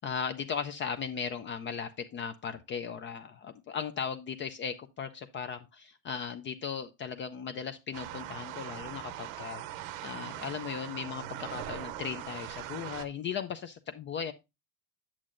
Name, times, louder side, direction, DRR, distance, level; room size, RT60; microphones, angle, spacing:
voice 1, 0.0-14.3, left 7 dB, 30° left, 10 dB, 0.4 m, -37 dB
sound 1, 7.9-13.1, right 12 dB, 90° right, 0.9 m, -41 dB
8.5 x 7.4 x 2.4 m, 0.24 s
cardioid pair, 145°, 39 cm